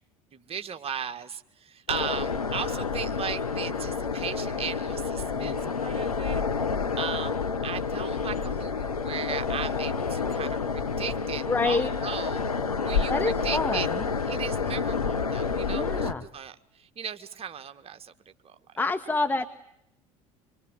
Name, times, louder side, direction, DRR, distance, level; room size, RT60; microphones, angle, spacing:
voice 1, 0.3-6.4 7.0-7.4 7.6-12.4 12.8-13.9 14.3-18.6, right 7 dB, 35° right, 8 dB, 1.8 m, -37 dB
sound 1, 1.9-16.1, left 5 dB, 85° left, 1.0 m, -29 dB
voice 2, 5.3-5.7 11.5-11.9 13.1-14.1 15.7-16.3 18.8-19.5, left 3 dB, 10° left, 10 dB, 1.2 m, -28 dB
26.0 x 23.0 x 9.7 m, 0.82 s
figure-of-eight pair, 65°, 18 cm